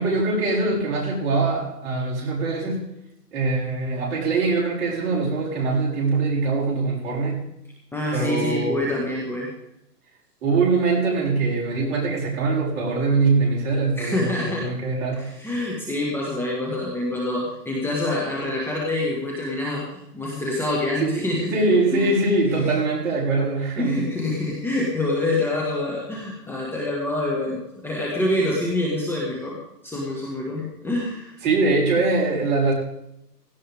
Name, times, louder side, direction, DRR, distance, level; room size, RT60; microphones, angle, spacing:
voice 1, 0.0-2.8 3.3-7.4 8.1-9.1 10.4-15.3 21.0-24.0 31.4-32.7, right 3 dB, 40° right, -4 dB, 6.7 m, -23 dB
voice 2, 7.9-9.5 14.0-14.7 15.1-22.1 22.5-22.7 23.8-29.6 29.8-31.4, left 1 dB, 5° left, -4 dB, 1.8 m, -26 dB
17.0 x 15.5 x 3.6 m, 0.81 s
hypercardioid pair, 150°, 49 cm